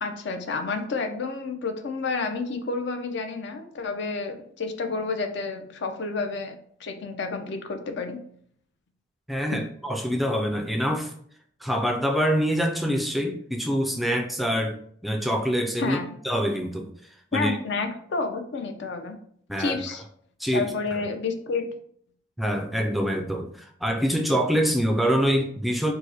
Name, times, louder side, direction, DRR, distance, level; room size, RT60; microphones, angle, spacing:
voice 1, 0.0-6.5 6.8-8.2 9.5-9.6 15.8-16.1 17.3-19.2 19.6-20.0 20.5-21.7, left 4 dB, 70° left, 6 dB, 0.5 m, -30 dB
voice 2, 9.3-11.1 11.6-14.8 15.0-16.0 16.2-16.9 17.3-17.6 19.5-19.8 20.4-20.7 22.4-25.9, equal, ahead, 3 dB, 0.3 m, -25 dB
4.6 x 2.1 x 2.7 m, 0.62 s
head